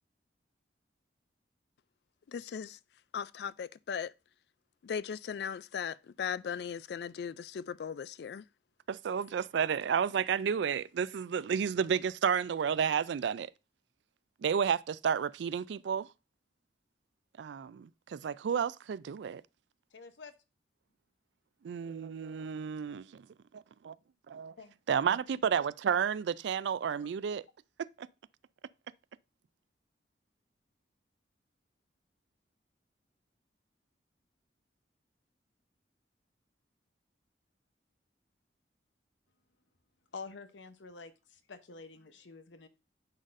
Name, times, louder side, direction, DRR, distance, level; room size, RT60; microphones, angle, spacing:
voice 1, 2.3-2.8 3.1-4.1 4.8-8.4, left 7 dB, 60° left, 0.3 m, -38 dB
voice 2, 8.9-13.5 14.4-16.1 17.4-19.4 21.6-23.3 23.5-23.9 24.3-24.5 24.9-27.4 28.0-28.1, right 7 dB, 75° right, 0.3 m, -31 dB
voice 3, 19.9-20.3 24.6-24.8 40.1-42.7, left 4 dB, 85° left, 0.8 m, -48 dB
9.7 x 4.0 x 2.5 m
head